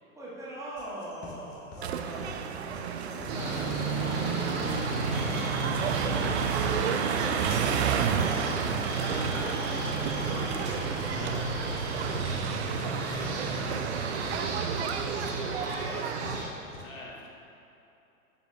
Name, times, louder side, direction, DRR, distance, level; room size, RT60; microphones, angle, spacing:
voice 1, 0.1-6.3 10.0-13.6 14.0-16.7, right 1 dB, 5° right, -8 dB, 1.5 m, -45 dB
sound 1, 0.8-16.8, left 3 dB, 25° left, 1.4 m, -45 dB
sound 2, 1.8-16.4, right 8 dB, 50° right, 0.5 m, -32 dB
sound 3, 3.3-16.5, right 2 dB, 30° right, 1.5 m, -33 dB
voice 2, 10.7-11.4 16.6-17.3, left 2 dB, 60° left, -2 dB, 1.6 m, -48 dB
10.5 x 7.1 x 2.8 m, 2.8 s
figure-of-eight pair, 100°, 44 cm